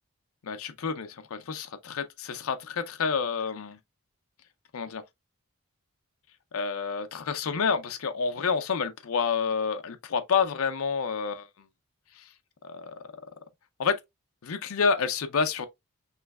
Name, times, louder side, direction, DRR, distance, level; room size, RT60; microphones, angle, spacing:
voice 1, 0.4-3.8 4.7-5.0 6.5-11.5 12.2-12.3 12.6-12.9 13.8-14.0 14.4-15.7, left 5 dB, 75° left, 0.5 m, -29 dB
5.6 x 3.1 x 2.3 m
head